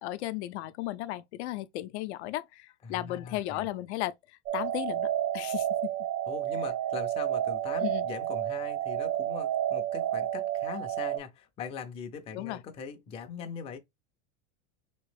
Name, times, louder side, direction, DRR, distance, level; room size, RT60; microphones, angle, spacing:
voice 1, 0.0-4.1 4.5-5.9 7.8-8.1 12.3-12.6, left 15 dB, 75° left, 0.5 m, -35 dB
voice 2, 2.8-3.7 6.3-13.8, left 6 dB, 20° left, 0.4 m, -41 dB
sound 1, 4.5-11.2, right 12 dB, 40° right, 0.6 m, -30 dB
3.2 x 3.0 x 3.2 m
supercardioid pair, 150°, 34 cm